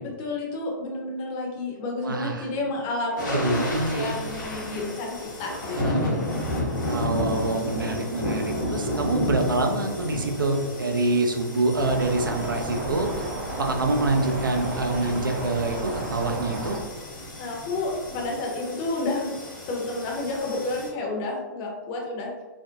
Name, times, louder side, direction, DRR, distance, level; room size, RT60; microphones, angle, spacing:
voice 1, 0.0-3.6 3.9-6.2 17.4-19.3 19.7-22.3, left 2 dB, 30° left, -1 dB, 0.6 m, -30 dB
voice 2, 2.0-2.5 3.2-4.2 5.8-6.1 6.9-13.1 13.5-16.8, right 2 dB, 80° right, 3 dB, 0.4 m, -26 dB
sound 1, 3.2-20.9, left 1 dB, 65° left, 0.7 m, -32 dB
sound 2, 11.7-16.8, right 2 dB, 20° right, 0.4 m, -33 dB
2.5 x 2.1 x 2.5 m, 1.2 s
figure-of-eight pair, 115°, 11 cm